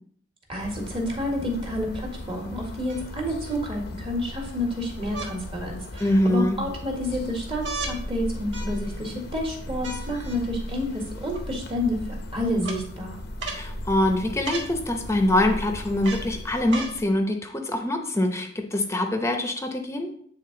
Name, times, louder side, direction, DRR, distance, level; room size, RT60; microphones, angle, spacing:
voice 1, 0.5-13.2, left 1 dB, 30° right, 0 dB, 1.6 m, -29 dB
sound 1, 0.6-17.2, left 1 dB, 60° left, 0.7 m, -37 dB
sound 2, 1.1-1.2 2.9-3.6 5.1-5.3 6.0-6.5 7.6-8.0 8.5-9.1 9.8-10.4 11.3-11.4 12.6-12.8 13.4-13.7 14.4-14.7 16.0-16.3 16.7-17.0 17.8-17.9, right 3 dB, 70° right, 1.2 m, -35 dB
voice 2, 6.0-6.6 13.5-20.1, left 1 dB, 15° left, 4 dB, 0.8 m, -24 dB
8.6 x 3.6 x 3.8 m, 0.63 s
head